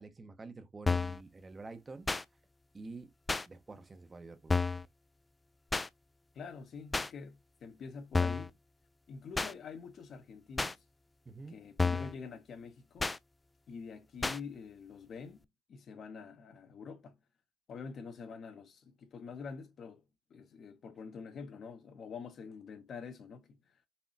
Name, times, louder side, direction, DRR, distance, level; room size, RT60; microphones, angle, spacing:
voice 1, 0.0-2.1 2.7-3.1 3.5-4.8 11.3-11.6, right 3 dB, 30° right, 0.8 m, -48 dB
sound 1, 0.9-1.2 2.1-2.2 3.3-3.4 4.5-4.8 5.7-5.9 6.9-7.1 8.1-8.5 9.3-9.5 10.6-10.7 11.8-12.1 13.0-13.2 14.2-14.4, left 3 dB, 20° left, 0.3 m, -30 dB
voice 2, 6.3-8.5 9.1-10.8 11.5-13.1 13.7-15.4 15.7-17.2 17.7-20.0 20.3-23.6, left 5 dB, 50° left, 0.9 m, -46 dB
4.3 x 2.9 x 2.7 m
hypercardioid pair, 50°, 0 cm